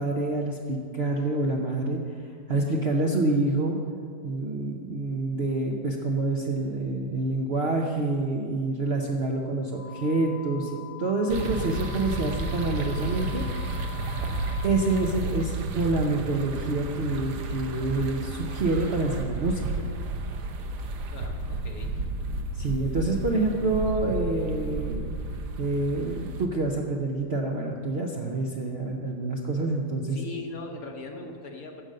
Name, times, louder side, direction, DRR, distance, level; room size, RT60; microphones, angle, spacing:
voice 1, 0.0-2.0 2.5-3.8 4.2-10.7 11.0-13.4 14.6-19.7 22.6-25.1 25.6-30.2, right 2 dB, 50° right, 0 dB, 0.7 m, -27 dB
sound 1, 9.7-15.0, left 16 dB, 80° left, 2.7 m, -44 dB
sound 2, 11.3-26.5, right 2 dB, 70° right, 1.3 m, -32 dB
voice 2, 21.1-21.9 30.1-31.8, left 3 dB, 55° left, 3 dB, 1.3 m, -39 dB
13.0 x 5.2 x 7.6 m, 2.2 s
omnidirectional pair, 2.0 m